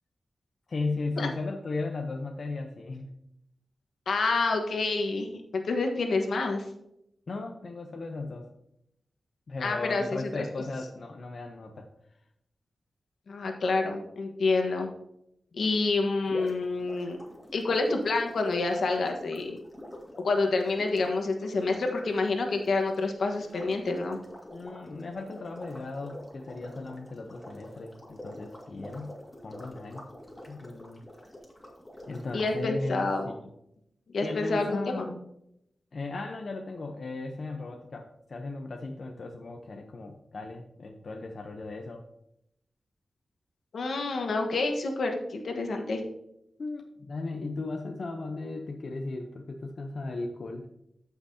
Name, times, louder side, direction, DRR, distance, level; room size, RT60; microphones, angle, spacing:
voice 1, 0.7-3.1 7.3-8.5 9.5-11.9 15.5-15.6 24.5-29.1 29.4-30.1 30.5-31.0 32.1-33.4 34.2-35.2 35.9-42.0 46.6-50.7, left 3 dB, 60° left, 3 dB, 0.8 m, -36 dB
voice 2, 4.1-5.3 5.5-6.6 9.6-10.4 13.3-14.9 15.5-17.2 17.5-19.5 20.2-24.2 32.3-33.3 34.1-35.1 43.7-46.0, left 3 dB, 85° left, 3 dB, 1.4 m, -28 dB
sound 1, 16.2-32.5, left 1 dB, 15° left, 2.1 m, -47 dB
13.5 x 5.9 x 2.8 m, 0.80 s
wide cardioid pair, 95°, 0 cm